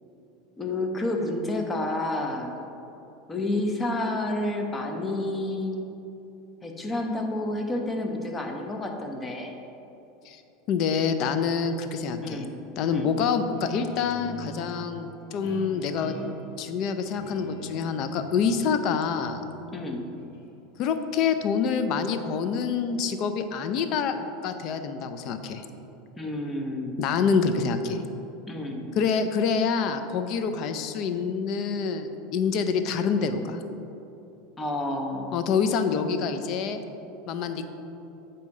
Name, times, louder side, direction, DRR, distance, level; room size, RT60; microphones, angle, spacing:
voice 1, 0.6-2.5 3.3-5.7 6.6-9.6 12.2-12.5 12.8-13.1 19.7-20.0 26.2-27.0 28.4-28.8 34.6-35.4, left 1 dB, 15° left, 2 dB, 0.8 m, -30 dB
voice 2, 10.7-12.5 12.8-16.1 16.6-19.4 20.8-24.2 24.4-25.6 27.0-28.0 29.0-33.6 35.3-36.8 37.3-37.6, left 6 dB, 50° left, 9 dB, 0.5 m, -26 dB
Guitar, 13.5-20.6, right 1 dB, 80° left, 1.1 m, -43 dB
8.2 x 2.8 x 5.3 m, 2.9 s
supercardioid pair, 105°, 0 cm